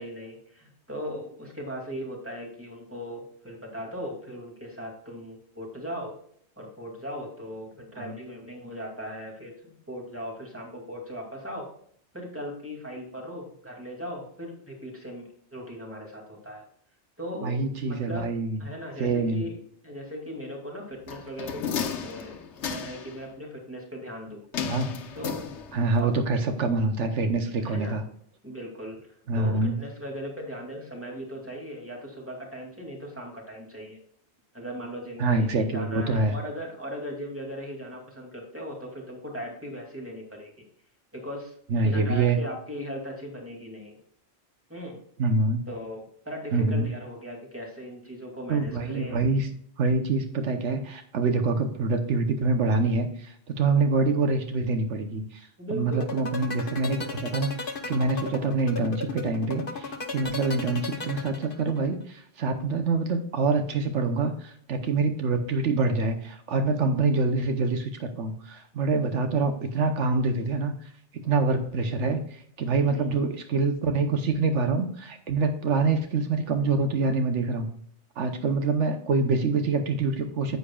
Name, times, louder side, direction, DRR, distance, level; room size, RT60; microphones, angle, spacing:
voice 1, 0.0-6.1 6.6-11.7 12.1-16.6 17.2-17.6 17.9-18.3 18.6-24.4 25.1-25.4 26.0-26.1 27.6-28.0 28.4-29.1 29.3-34.0 34.5-40.6 41.1-41.5 41.8-44.0 44.7-45.0 45.7-49.2 55.6-56.2 72.8-73.2, equal, 10° right, 0 dB, 2.4 m, -38 dB
voice 2, 17.4-18.6 19.0-19.4 24.7-25.0 25.7-28.0 29.3-29.7 35.2-36.3 41.7-42.4 45.2-45.7 46.5-46.9 48.5-49.5 49.8-77.7 78.2-80.6, right 3 dB, 85° right, 7 dB, 1.2 m, -26 dB
sound 1, 21.1-23.2 24.5-26.0 26.3-26.4, left 7 dB, 80° left, 1.1 m, -33 dB
sound 2, 55.9-61.9, left 3 dB, 50° left, 1.2 m, -35 dB
9.8 x 8.0 x 2.3 m, 0.63 s
omnidirectional pair, 1.2 m